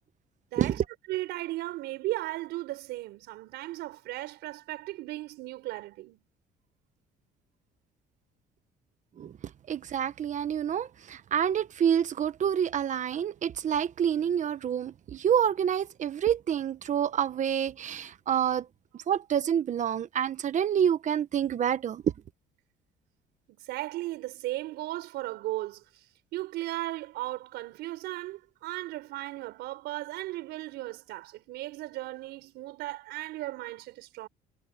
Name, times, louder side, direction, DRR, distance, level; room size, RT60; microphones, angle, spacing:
voice 1, 0.5-0.8 1.1-6.2 23.5-25.8 26.3-34.3, right 17 dB, 85° right, 5.0 m, -36 dB
voice 2, 9.7-18.6 19.1-22.1, right 9 dB, 45° right, 1.3 m, -27 dB
cardioid pair, 110°, 17 cm